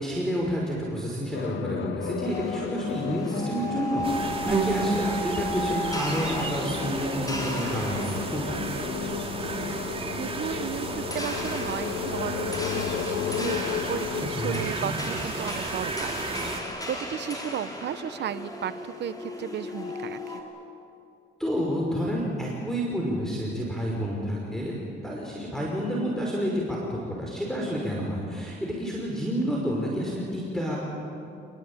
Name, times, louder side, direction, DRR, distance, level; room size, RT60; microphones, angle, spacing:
voice 1, 0.0-8.6 14.2-15.0 21.4-24.8 25.0-30.8, equal, ahead, -3 dB, 5.7 m, -29 dB
sound 1, 1.3-14.7, left 11 dB, 70° left, 0.7 m, -34 dB
sound 2, 2.2-20.4, left 1 dB, 20° left, 5.5 m, -36 dB
sound 3, 4.0-16.6, right 3 dB, 30° right, 3.1 m, -33 dB
voice 2, 10.2-20.4, right 9 dB, 60° right, 13 dB, 0.9 m, -35 dB
27.5 x 21.0 x 8.9 m, 2.6 s
cardioid pair, 90°, 20 cm